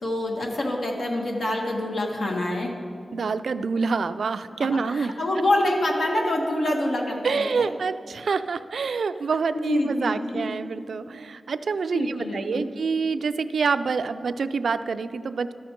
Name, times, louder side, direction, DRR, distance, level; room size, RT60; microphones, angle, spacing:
voice 1, 0.0-2.7 4.9-7.7 9.6-10.5 11.9-12.7, left 1 dB, 80° left, 0 dB, 1.4 m, -26 dB
voice 2, 3.1-5.1 7.2-15.5, right 5 dB, 80° right, 12 dB, 0.3 m, -27 dB
13.0 x 6.4 x 4.3 m, 2.3 s
wide cardioid pair, 90°, 0 cm